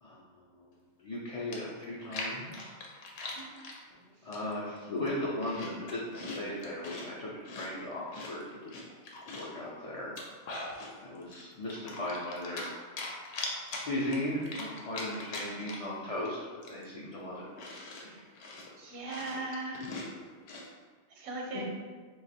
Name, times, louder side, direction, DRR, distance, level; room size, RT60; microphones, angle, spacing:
voice 1, 1.0-2.7 4.2-7.3 7.6-8.7 9.3-10.2 11.0-12.7 13.8-16.4 16.7-17.4 21.5-21.6, left 1 dB, 50° left, -6 dB, 0.4 m, -37 dB
Chewing mastication, 1.1-1.2 1.5-3.8 4.3-4.7 5.0-7.1 7.4-9.6 10.0-10.9 11.3-12.7 13.0-16.0 16.2-16.3 16.6-20.7, left 2 dB, 70° left, 0.8 m, -41 dB
voice 2, 18.8-19.9 21.2-21.6, right 2 dB, 70° right, -1 dB, 1.0 m, -39 dB
2.8 x 2.3 x 4.1 m, 1.5 s
omnidirectional pair, 1.2 m